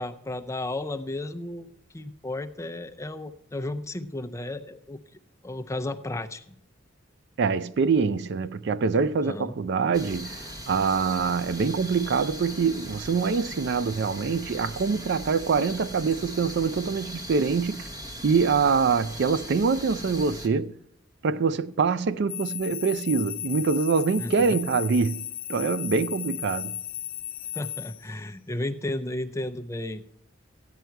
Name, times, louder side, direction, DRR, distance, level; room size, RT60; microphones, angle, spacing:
voice 1, 0.0-1.7 1.9-5.0 5.4-6.5 9.2-9.6 24.2-24.6 27.5-30.0, left 1 dB, 15° left, 0.5 m, -33 dB
voice 2, 7.4-17.9 18.2-20.7 21.2-25.2 25.5-26.7, right 5 dB, 60° right, 0.4 m, -25 dB
sound 1, 9.9-20.5, equal, 20° right, 1.1 m, -39 dB
sound 2, 22.3-28.0, left 11 dB, 50° left, 0.8 m, -35 dB
14.0 x 9.3 x 4.6 m
head